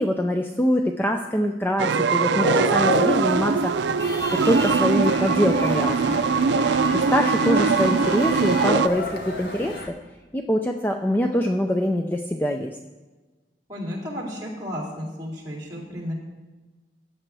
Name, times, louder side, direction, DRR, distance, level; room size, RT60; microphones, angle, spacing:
voice 1, 0.0-3.7 4.5-6.2 6.9-9.7 10.3-12.8, equal, 10° left, 3 dB, 0.4 m, -24 dB
sound 1, 1.8-8.9, right 5 dB, 85° right, 0.4 m, -22 dB
sound 2, 2.4-9.8, left 1 dB, 45° left, 3.3 m, -32 dB
sound 3, 4.0-9.9, left 2 dB, 65° left, 1.1 m, -34 dB
voice 2, 13.7-16.1, equal, 20° right, -3 dB, 2.8 m, -33 dB
15.0 x 9.0 x 3.4 m, 1.2 s
head